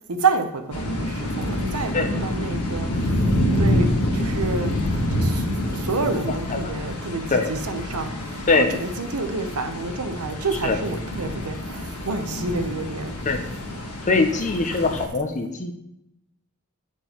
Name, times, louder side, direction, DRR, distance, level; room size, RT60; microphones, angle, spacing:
voice 1, 0.1-3.3 3.6-3.9 4.1-4.7 5.2-5.5 5.7-13.1 14.7-14.8, right 3 dB, 75° right, 7 dB, 0.8 m, -28 dB
sound 1, 0.7-15.1, equal, 75° left, 1.5 m, -27 dB
voice 2, 14.0-15.7, left 3 dB, 35° left, 5 dB, 0.6 m, -22 dB
8.7 x 4.5 x 4.4 m, 0.83 s
head